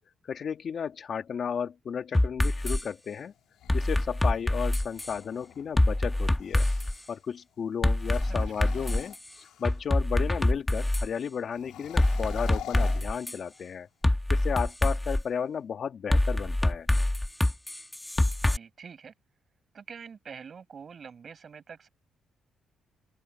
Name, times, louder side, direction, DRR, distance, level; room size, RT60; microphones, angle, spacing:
voice 1, 0.2-3.3 3.7-6.7 7.1-13.9 14.3-16.9, left 7 dB, 55° left, 1.7 m, -33 dB
sound 1, 2.1-2.8 3.7-5.1 5.8-6.9 7.8-9.1 9.6-11.1 12.0-13.4 14.0-15.2 16.1-18.6, left 1 dB, 10° left, 1.7 m, -25 dB
sound 2, 3.4-7.1 7.9-9.9 11.5-13.8, left 12 dB, 85° left, 4.2 m, -47 dB
voice 2, 8.2-8.7 18.4-19.1 19.7-21.9, right 6 dB, 45° right, 7.9 m, -46 dB
open air
cardioid pair, 90°, 0 cm